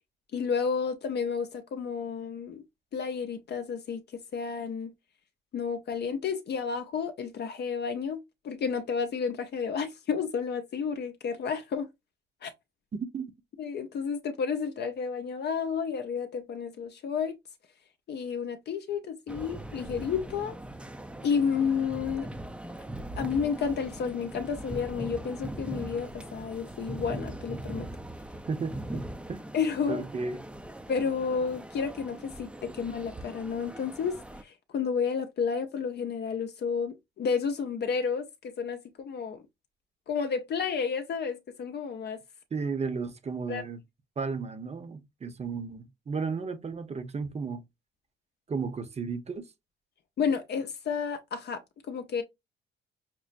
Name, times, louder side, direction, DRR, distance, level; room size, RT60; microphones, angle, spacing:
voice 1, 0.3-2.6 2.9-4.9 5.5-8.2 8.4-11.9 12.4-12.5 13.6-17.4 18.1-20.6 21.2-22.3 23.2-27.9 29.5-30.0 30.9-34.2 34.4-39.4 40.1-42.2 43.5-43.6 50.2-51.6 51.9-52.2, left 6 dB, 55° left, 0.6 m, -31 dB
sound 1, 19.3-34.4, right 1 dB, 5° right, 0.5 m, -40 dB
voice 2, 28.5-29.0 29.3-29.5 29.9-30.4 42.5-43.8 44.2-47.6 48.5-49.5, right 5 dB, 35° right, 0.8 m, -34 dB
5.9 x 2.0 x 2.5 m
cardioid pair, 90°, 20 cm